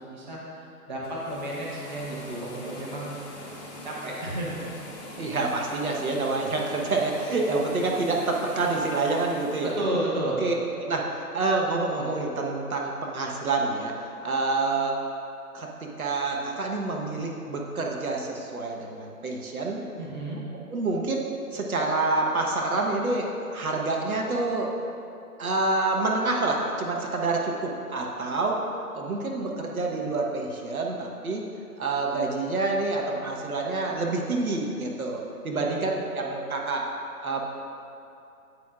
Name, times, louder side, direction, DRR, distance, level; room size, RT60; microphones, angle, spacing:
voice 1, 0.0-4.7 9.6-10.4 20.0-20.4 35.5-35.9, right 1 dB, 30° right, -4 dB, 1.0 m, -33 dB
sound 1, 0.9-9.9, left 1 dB, 25° left, 1.1 m, -42 dB
voice 2, 5.2-9.7 10.4-15.0 15.5-15.7 16.0-19.8 20.7-24.7 25.4-28.6 28.9-31.4 31.8-36.8 37.2-37.4, right 3 dB, 65° right, 0 dB, 1.2 m, -27 dB
9.5 x 8.1 x 2.5 m, 2.7 s
figure-of-eight pair, 155°, 46 cm